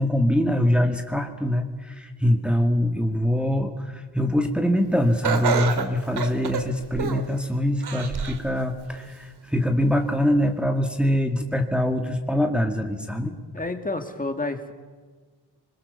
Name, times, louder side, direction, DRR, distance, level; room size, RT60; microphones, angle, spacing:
voice 1, 0.0-13.3, left 1 dB, 5° right, 3 dB, 2.1 m, -23 dB
Laughter, 5.2-7.4 7.8-8.5 9.0-9.1 10.0-10.1, right 6 dB, 70° right, 2.3 m, -27 dB
voice 2, 13.5-14.7, left 2 dB, 20° left, 6 dB, 2.3 m, -29 dB
25.0 x 22.0 x 7.0 m, 1.4 s
cardioid pair, 80°, 40 cm